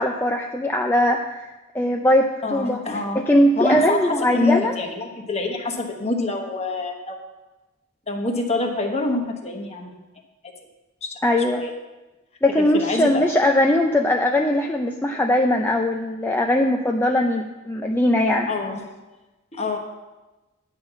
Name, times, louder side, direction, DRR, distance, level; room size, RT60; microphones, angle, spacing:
voice 1, 0.0-2.8 3.1-4.8 11.2-11.6 12.4-18.5, left 1 dB, 10° left, 2 dB, 0.4 m, -20 dB
voice 2, 2.4-3.2 3.5-7.2 8.1-10.0 11.0-11.1 11.5-11.7 12.6-13.3 18.5-18.8 19.5-19.8, left 2 dB, 35° left, 3 dB, 1.2 m, -26 dB
9.8 x 5.6 x 6.8 m, 1.1 s
head